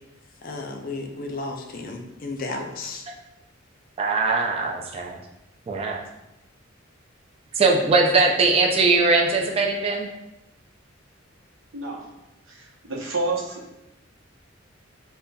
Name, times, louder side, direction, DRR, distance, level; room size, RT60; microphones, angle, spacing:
voice 1, 0.4-3.0, left 3 dB, 45° left, 2 dB, 0.4 m, -33 dB
voice 2, 4.0-5.2 5.7-6.0 7.6-10.1, right 3 dB, 30° right, 0 dB, 0.3 m, -21 dB
voice 3, 11.7-12.0 12.5-13.8, right 2 dB, 80° right, -2 dB, 0.8 m, -30 dB
5.2 x 2.2 x 2.2 m, 0.93 s
head